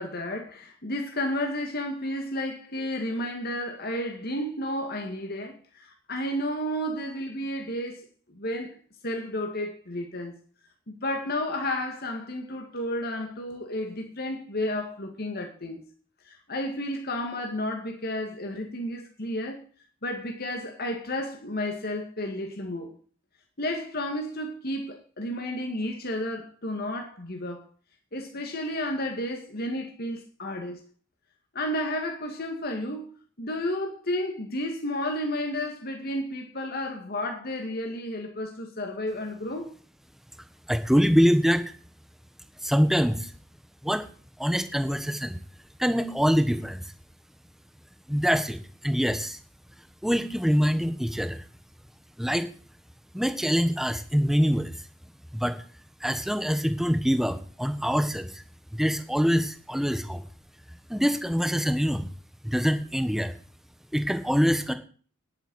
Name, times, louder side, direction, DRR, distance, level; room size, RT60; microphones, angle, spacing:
voice 1, 0.0-8.8 9.0-10.3 10.9-15.8 16.2-19.6 20.0-22.9 23.6-27.7 28.1-30.8 31.5-33.1 33.4-39.7, left 1 dB, 50° left, 2.1 m, -32 dB
voice 2, 40.7-41.7 42.6-43.3 43.8-44.1 44.4-45.4 45.8-46.8 48.1-49.4 50.0-51.4 52.2-52.5 53.1-54.8 55.3-55.6 56.0-58.4 58.7-60.2 60.9-62.1 62.4-63.4 63.9-64.7, equal, ahead, 1.3 m, -24 dB
10.5 x 9.4 x 6.4 m
head